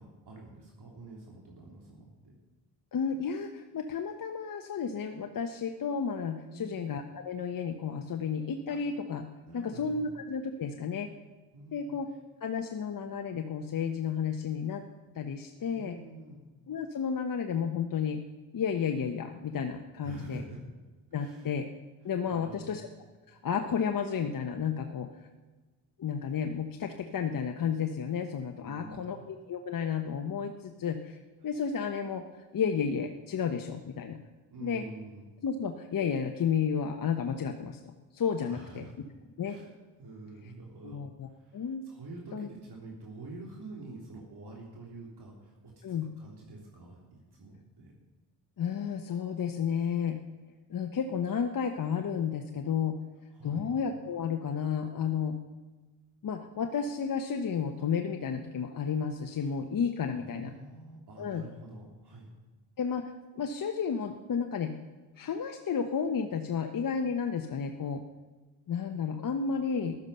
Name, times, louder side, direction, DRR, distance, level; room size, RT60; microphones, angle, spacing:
voice 1, 0.0-2.3 6.4-6.8 9.5-10.1 11.5-11.9 15.7-16.5 20.0-20.6 21.2-21.5 22.1-22.8 28.6-29.3 34.5-35.3 38.4-39.0 39.4-39.7 40.0-48.0 53.3-53.7 59.3-59.5 60.1-62.3, right 2 dB, 50° right, -2 dB, 3.4 m, -47 dB
voice 2, 2.9-9.2 9.5-11.1 11.7-12.1 12.4-14.8 15.1-15.9 16.7-18.2 18.5-20.4 21.1-21.7 22.0-22.9 23.3-25.3 26.0-34.2 34.6-34.8 35.4-37.8 38.1-38.9 39.4-39.6 40.8-41.3 41.5-41.8 42.3-42.5 45.8-46.1 48.6-50.2 50.7-53.0 53.4-55.4 56.2-60.5 61.2-61.4 62.8-64.8 65.2-68.0 68.7-70.0, left 6 dB, 40° left, 5 dB, 1.2 m, -32 dB
14.5 x 12.0 x 5.6 m, 1.3 s
hypercardioid pair, 45°, 48 cm